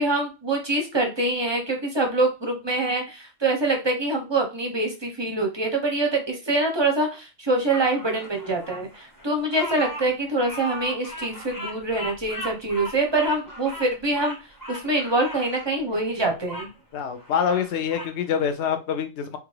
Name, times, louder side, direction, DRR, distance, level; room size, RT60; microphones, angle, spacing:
voice 1, 0.0-14.4 14.7-16.7, right 2 dB, 30° right, 2 dB, 0.5 m, -25 dB
Bird vocalization bird call bird song, 7.7-16.7 17.1-18.2, equal, 20° left, 0.7 m, -38 dB
voice 2, 16.9-19.4, left 7 dB, 65° left, 8 dB, 0.8 m, -25 dB
3.1 x 2.4 x 3.1 m, 0.29 s
omnidirectional pair, 1.4 m